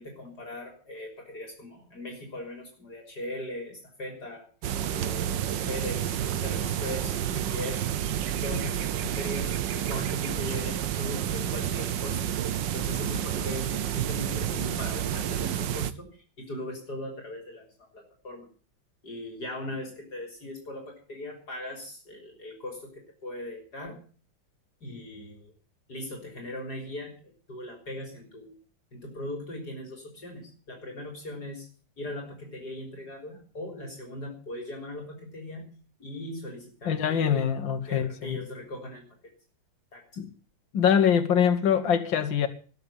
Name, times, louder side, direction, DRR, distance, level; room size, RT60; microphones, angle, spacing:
voice 1, 0.0-4.5 4.9-7.8 8.3-12.2 12.7-16.1 16.4-18.5 19.0-24.0 24.8-25.5 25.9-28.6 28.9-31.7 32.0-35.7 36.0-37.5 37.9-39.1 39.9-40.0, left 1 dB, 55° left, 4.2 m, -39 dB
sound 1, 4.6-15.9, right 10 dB, 75° right, 1.6 m, -30 dB
voice 2, 36.9-38.4 40.2-40.3 40.7-42.5, left 8 dB, 80° left, 2.1 m, -24 dB
19.5 x 6.9 x 8.7 m
omnidirectional pair, 2.0 m